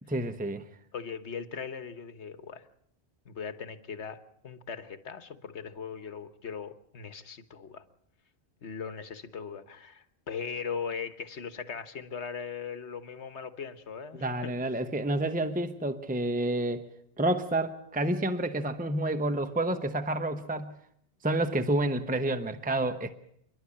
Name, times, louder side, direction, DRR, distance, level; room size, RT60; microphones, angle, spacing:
voice 1, 0.1-0.6 14.1-16.8 17.2-20.7 21.2-23.1, right 1 dB, 10° right, 9 dB, 0.9 m, -29 dB
voice 2, 0.9-2.7 3.2-7.8 8.6-14.5, left 6 dB, 80° left, 11 dB, 1.5 m, -39 dB
28.5 x 11.5 x 8.6 m, 0.72 s
omnidirectional pair, 1.1 m